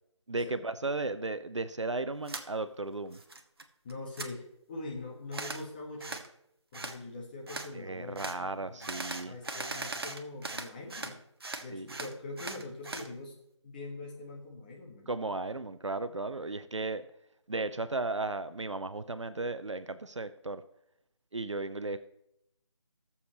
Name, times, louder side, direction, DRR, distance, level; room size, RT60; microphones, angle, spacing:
voice 1, 0.3-3.2 7.7-9.4 11.7-11.9 15.1-17.0 17.5-20.6 21.3-22.0, right 3 dB, 75° right, 12 dB, 0.7 m, -35 dB
sound 1, 2.3-2.5 2.9-3.6 3.9-4.3 5.3-5.6 6.0-6.3 6.7-7.0 7.5-7.7 8.2-8.4 8.8-11.1 11.4-13.1, right 3 dB, 50° right, 1.0 m, -39 dB
voice 2, 3.8-6.2 6.7-11.2 11.6-13.4 13.6-15.4, left 2 dB, 20° left, 0 dB, 1.4 m, -43 dB
19.5 x 7.1 x 3.1 m, 0.78 s
figure-of-eight pair, 160°, 16 cm